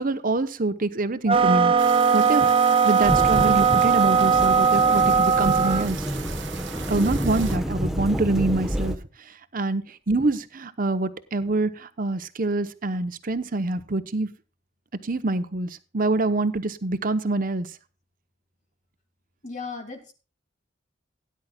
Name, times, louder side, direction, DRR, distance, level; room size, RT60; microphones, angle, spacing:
voice 1, 0.0-1.7 2.1-6.1 6.9-9.0 9.3-14.3 15.0-17.7, right 2 dB, 50° right, 12 dB, 1.0 m, -26 dB
sound 1, 1.3-5.9, right 6 dB, 30° right, 0.6 m, -19 dB
sound 2, 1.8-7.6, right 8 dB, 75° right, 1.1 m, -39 dB
Thunderstorm / Rain, 3.0-9.0, equal, ahead, 1.1 m, -29 dB
voice 2, 19.4-20.1, left 4 dB, 40° left, 4 dB, 2.2 m, -36 dB
17.5 x 10.5 x 2.3 m, 0.33 s
head